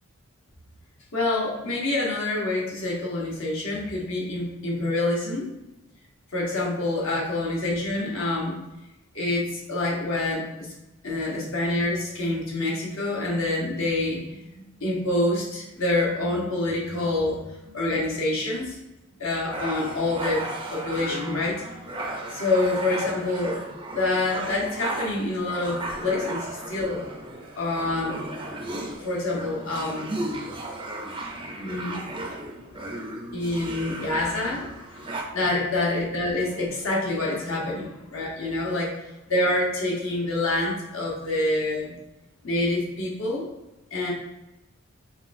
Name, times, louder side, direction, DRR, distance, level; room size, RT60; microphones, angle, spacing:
voice 1, 1.1-5.5 6.3-8.6 9.1-10.7 11.0-18.8 19.2-20.4 20.7-21.6 22.3-23.6 23.9-27.0 27.6-28.2 29.0-30.1 31.6-32.8 33.3-38.9 39.3-41.9 42.4-43.5 43.9-44.1, left 2 dB, 70° left, -4 dB, 1.0 m, -27 dB
sound 1, 19.5-35.2, right 1 dB, 25° right, 0.4 m, -35 dB
5.5 x 2.2 x 2.6 m, 0.96 s
head